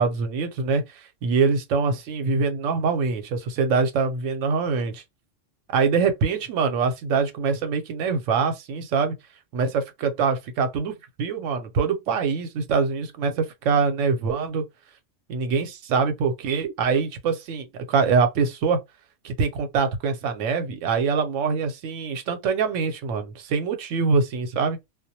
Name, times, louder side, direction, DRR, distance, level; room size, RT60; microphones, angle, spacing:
voice 1, 0.0-5.0 5.7-9.1 9.5-10.9 11.2-14.6 15.3-18.8 19.2-24.8, right 5 dB, 85° right, 0.9 m, -24 dB
2.2 x 2.0 x 2.7 m
omnidirectional pair, 1.3 m